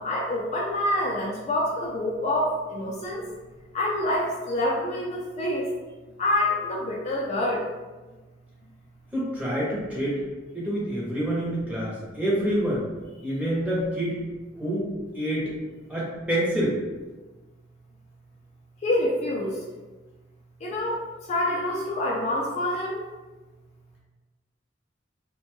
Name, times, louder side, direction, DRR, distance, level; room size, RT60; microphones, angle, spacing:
voice 1, 0.0-3.2 3.7-5.6 6.2-7.6 18.8-19.5 20.6-21.0 21.3-23.0, left 1 dB, 35° left, -4 dB, 0.4 m, -26 dB
voice 2, 9.1-10.2 10.5-12.8 13.2-14.2 14.6-14.9 15.1-15.5 15.9-16.8, equal, 5° right, -6 dB, 0.7 m, -27 dB
2.6 x 2.2 x 2.9 m, 1.2 s
head